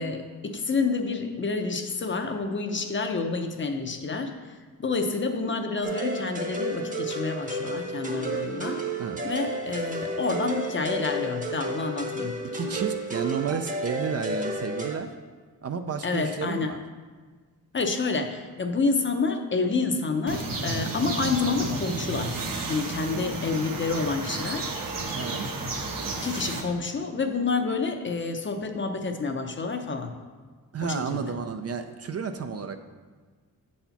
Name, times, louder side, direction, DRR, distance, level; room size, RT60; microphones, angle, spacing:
voice 1, 0.0-8.8 9.2-12.3 16.0-16.7 17.7-24.7 26.2-30.1 30.8-31.2, left 4 dB, 30° left, 5 dB, 0.7 m, -28 dB
sound 1, 5.8-15.0, right 1 dB, 20° right, 0.9 m, -31 dB
voice 2, 12.5-15.1 15.6-16.8 25.1-25.5 30.7-32.8, right 6 dB, 45° right, 8 dB, 0.4 m, -31 dB
sound 2, 20.3-26.6, right 3 dB, 60° right, 1.1 m, -32 dB
7.8 x 4.3 x 5.7 m, 1.5 s
wide cardioid pair, 125°, 36 cm